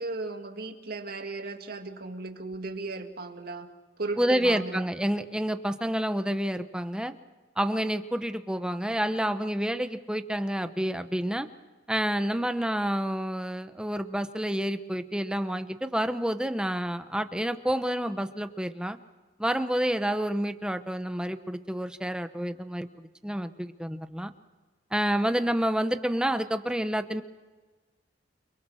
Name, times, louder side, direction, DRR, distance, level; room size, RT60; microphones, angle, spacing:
voice 1, 0.0-3.7 4.0-4.8, right 3 dB, 55° right, 5 dB, 2.2 m, -36 dB
voice 2, 4.2-7.1 7.6-11.5 11.9-19.0 19.4-22.9 23.2-24.3 24.9-27.2, equal, 5° right, 9 dB, 1.0 m, -29 dB
29.5 x 23.0 x 6.4 m, 1.3 s
head